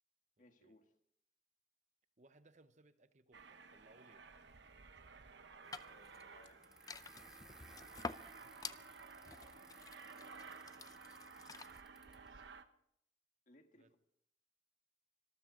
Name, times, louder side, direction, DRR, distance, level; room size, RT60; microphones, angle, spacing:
voice 1, 0.4-0.9 5.8-6.7 11.7-12.5 13.5-14.0, left 2 dB, 45° left, 1.6 m, -68 dB
voice 2, 2.2-4.3 8.2-8.9 13.8-14.0, right 2 dB, 40° right, 0.9 m, -67 dB
Aircraft, 3.3-12.6, right 5 dB, 75° right, 1.0 m, -56 dB
sound 1, 5.6-11.8, left 4 dB, 20° left, 0.5 m, -51 dB
sound 2, 6.6-12.3, right 1 dB, 5° right, 1.3 m, -63 dB
26.0 x 14.0 x 3.8 m
head